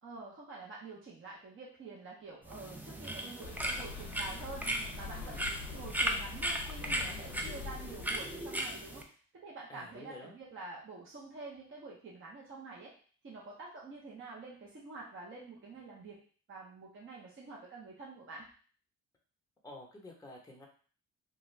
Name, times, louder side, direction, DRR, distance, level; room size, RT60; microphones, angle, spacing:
voice 1, 0.0-9.0 9.3-12.9 13.2-16.2 16.5-18.5, right 3 dB, 40° right, -4 dB, 0.9 m, -47 dB
sound 1, 2.5-9.0, right 1 dB, 5° right, 0.4 m, -37 dB
sound 2, 3.4-8.5, left 5 dB, 85° left, 0.5 m, -45 dB
voice 2, 9.7-10.3 19.6-20.7, left 2 dB, 10° left, -1 dB, 0.8 m, -50 dB
2.5 x 2.4 x 3.2 m, 0.43 s
cardioid pair, 90°, 30 cm